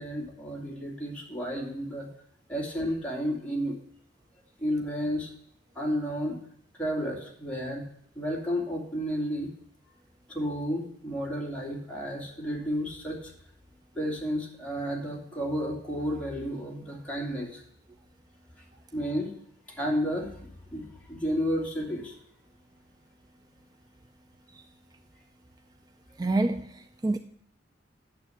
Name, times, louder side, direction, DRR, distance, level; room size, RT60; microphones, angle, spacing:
voice 1, 0.0-2.1 2.5-3.8 4.6-5.3 5.7-6.4 6.8-7.9 8.2-9.5 10.3-13.3 13.9-17.6 18.9-19.3 19.7-22.1, equal, 5° left, -3 dB, 2.5 m, -32 dB
voice 2, 26.2-27.2, right 2 dB, 20° right, 8 dB, 0.4 m, -28 dB
9.1 x 7.2 x 6.3 m, 0.66 s
head